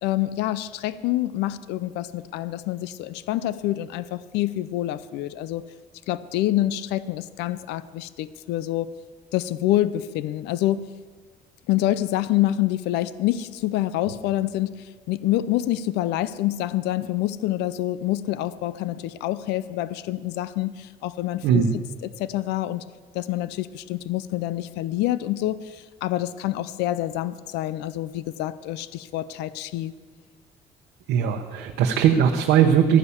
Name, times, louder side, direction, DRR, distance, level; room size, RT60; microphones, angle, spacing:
voice 1, 0.0-5.6 6.1-9.0 9.3-10.8 11.7-14.7 15.1-22.8 23.1-29.9, left 14 dB, 90° left, 16 dB, 0.5 m, -27 dB
voice 2, 21.4-21.8 31.1-33.0, right 8 dB, 90° right, 3 dB, 0.9 m, -19 dB
13.0 x 9.7 x 7.0 m, 1.5 s
cardioid pair, 110°, 17 cm